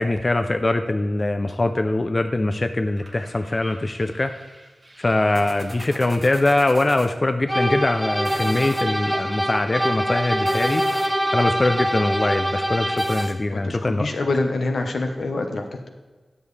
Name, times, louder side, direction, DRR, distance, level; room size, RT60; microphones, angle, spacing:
voice 1, 0.0-4.3 5.0-11.0 11.3-14.1, left 2 dB, 30° left, 7 dB, 0.4 m, -22 dB
sound 1, 3.0-7.1 8.1-8.9 10.3-11.3 13.0-13.3, right 1 dB, 30° right, 1.1 m, -40 dB
sound 2, 7.5-13.4, equal, 5° right, 1.8 m, -24 dB
voice 2, 13.5-15.9, left 2 dB, 80° left, 4 dB, 1.1 m, -26 dB
10.5 x 7.1 x 3.3 m, 1.3 s
wide cardioid pair, 115°, 0 cm